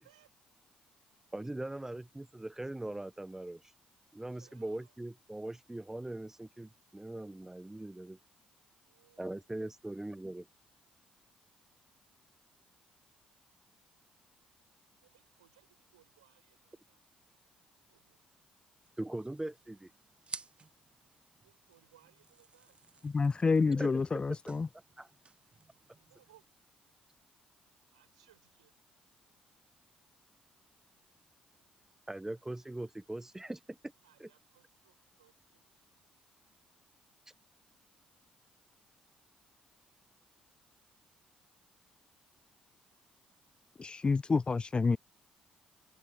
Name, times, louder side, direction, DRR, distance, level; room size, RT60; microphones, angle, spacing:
voice 1, 1.3-3.6 4.1-8.2 9.2-10.5 19.0-19.9 23.7-23.9 25.0-25.1 32.1-33.8 34.2-34.3, right 1 dB, 15° right, 1.1 m, -41 dB
voice 2, 4.3-5.0 8.8-9.5 13.9-14.1 14.4-17.0 17.9-18.3 21.4-23.4 26.0-26.5 27.9-28.7 34.0-35.9, right 14 dB, 90° right, 6.5 m, -68 dB
sound 1, 18.8-26.5, right 4 dB, 35° right, 1.4 m, -53 dB
voice 3, 23.0-24.7 43.8-45.0, left 4 dB, 30° left, 0.4 m, -28 dB
hypercardioid pair, 45°, 3 cm